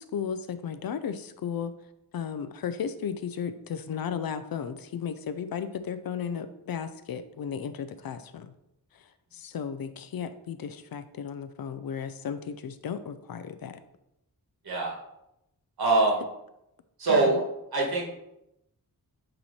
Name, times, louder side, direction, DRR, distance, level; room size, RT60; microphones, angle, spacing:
voice 1, 0.0-1.7 2.1-8.5 8.9-9.0 9.3-13.8 17.1-17.3, left 7 dB, 70° left, 11 dB, 0.5 m, -35 dB
voice 2, 14.6-15.0 15.8-16.2 17.0-17.5 17.7-18.1, right 3 dB, 75° right, -2 dB, 2.1 m, -23 dB
8.7 x 3.1 x 4.2 m, 0.84 s
wide cardioid pair, 150°, 37 cm